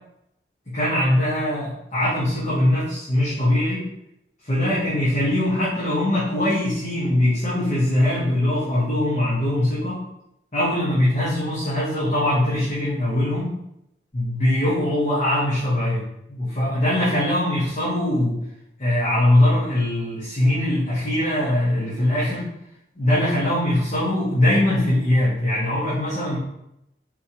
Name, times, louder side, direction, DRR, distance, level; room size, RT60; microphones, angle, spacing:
voice 1, 0.7-3.8 4.4-10.0 10.5-13.5 14.1-18.4 18.8-22.5 22.9-26.4, left 1 dB, 40° left, -10 dB, 1.3 m, -21 dB
4.5 x 3.4 x 2.9 m, 0.80 s
head